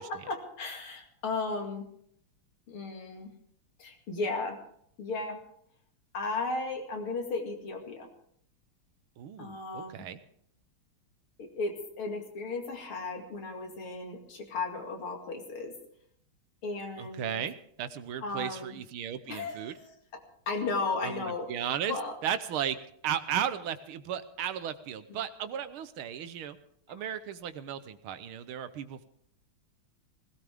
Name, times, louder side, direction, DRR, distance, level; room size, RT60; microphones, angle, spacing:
voice 1, 0.0-1.9 2.7-3.3 3.8-4.6 5.0-5.4 6.1-8.1 9.4-10.1 11.4-15.7 16.6-17.4 18.2-18.8 19.3-19.9 20.5-22.2 25.1-25.2, left 3 dB, 85° left, 2 dB, 3.1 m, -35 dB
voice 2, 9.2-10.2 17.0-19.8 21.0-22.0 22.2-22.8 23.0-26.6 26.9-29.0, right 9 dB, 80° right, 12 dB, 1.7 m, -35 dB
20.0 x 17.0 x 3.5 m, 0.68 s
omnidirectional pair, 2.3 m